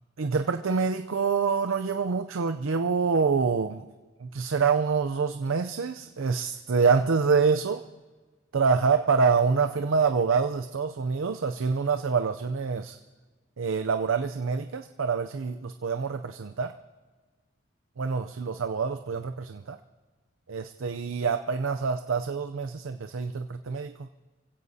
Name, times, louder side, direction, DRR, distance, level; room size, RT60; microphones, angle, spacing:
voice 1, 0.2-3.8 4.2-7.8 8.5-13.0 13.6-16.7 18.0-19.8 20.5-24.1, right 5 dB, 85° right, 8 dB, 0.5 m, -26 dB
25.5 x 16.0 x 2.8 m, 1.4 s
head